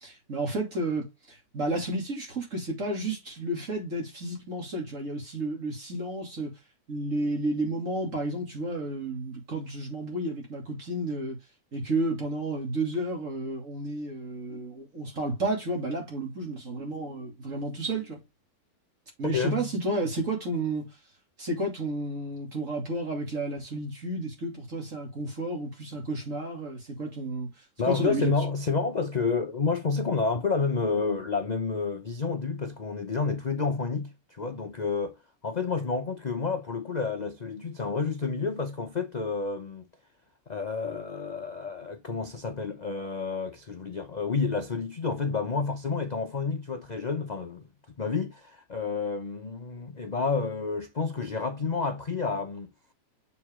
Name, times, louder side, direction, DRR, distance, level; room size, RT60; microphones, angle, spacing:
voice 1, 0.0-6.5 6.9-11.4 11.7-18.2 19.2-20.9 21.4-27.5 27.8-28.3, right 2 dB, 45° right, 3.1 m, -31 dB
voice 2, 19.2-19.7 27.8-35.2 35.4-39.8 40.5-47.7 48.0-52.7, left 4 dB, 65° left, 0.4 m, -30 dB
7.1 x 4.9 x 3.6 m
omnidirectional pair, 1.8 m